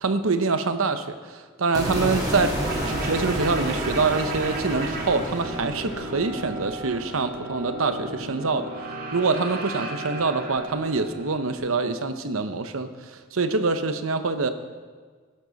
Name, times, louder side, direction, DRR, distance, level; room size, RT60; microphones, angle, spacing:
voice 1, 0.0-2.6 2.8-8.7 9.1-12.9 13.3-14.5, right 4 dB, 85° right, 10 dB, 0.9 m, -25 dB
sound 1, 1.7-8.0, right 1 dB, 20° right, 2.7 m, -31 dB
sound 2, 2.6-11.6, right 2 dB, 45° right, 2.0 m, -34 dB
15.5 x 11.5 x 4.0 m, 1.5 s
head